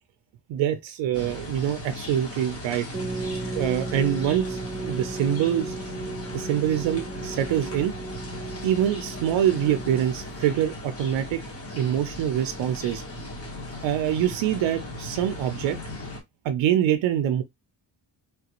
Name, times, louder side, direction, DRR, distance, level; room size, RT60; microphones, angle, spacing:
voice 1, 0.5-2.9 3.4-5.7 6.3-7.9 8.6-11.4 11.8-13.0 13.8-15.8 16.4-17.4, right 10 dB, 85° right, 0.6 m, -25 dB
sound 1, 1.1-16.2, left 1 dB, 30° left, 1.2 m, -38 dB
sound 2, 2.9-10.4, right 3 dB, 15° right, 0.6 m, -35 dB
3.4 x 2.4 x 2.9 m
cardioid pair, 125°, 44 cm